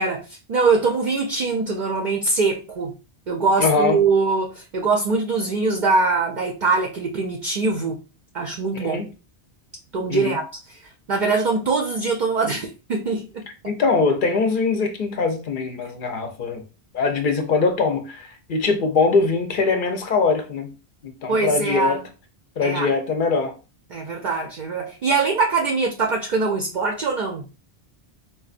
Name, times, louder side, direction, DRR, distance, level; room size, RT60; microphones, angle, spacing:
voice 1, 0.0-2.9 3.3-8.0 8.3-9.0 9.9-10.4 11.1-13.4 21.3-22.0 22.6-22.9 23.9-27.4, right 4 dB, 55° right, 0.6 m, -22 dB
voice 2, 3.6-4.0 8.8-9.1 10.1-10.4 13.6-16.6 16.9-20.7 21.0-22.0 22.6-23.5, left 4 dB, 55° left, 0.7 m, -22 dB
4.1 x 2.3 x 2.4 m
omnidirectional pair, 1.1 m